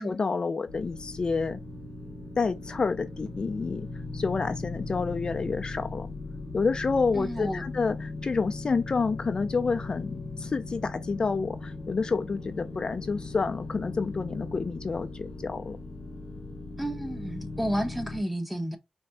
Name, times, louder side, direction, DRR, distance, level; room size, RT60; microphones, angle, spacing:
voice 1, 0.0-1.6 2.4-3.9 4.1-6.1 6.5-15.8, left 4 dB, 45° left, 0.4 m, -29 dB
sound 1, 0.7-18.2, left 3 dB, 85° left, 0.9 m, -38 dB
voice 2, 7.1-7.7 16.8-18.8, equal, 5° right, 0.8 m, -31 dB
4.2 x 2.6 x 2.2 m
cardioid pair, 70°, 2 cm